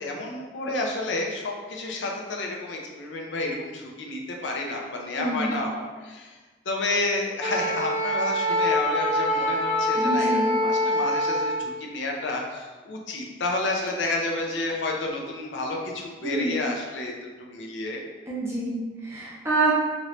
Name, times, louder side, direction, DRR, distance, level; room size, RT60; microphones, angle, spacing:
voice 1, 0.0-6.3 6.7-17.1 17.4-18.0, left 2 dB, 80° left, 0 dB, 0.5 m, -30 dB
voice 2, 5.2-5.6 9.9-10.5 16.2-16.6 18.3-19.7, right 2 dB, 15° right, -6 dB, 0.7 m, -27 dB
Wind instrument woodwind instrument, 7.4-11.7, left 1 dB, 65° left, 1.1 m, -24 dB
3.0 x 2.5 x 3.0 m, 1.3 s
head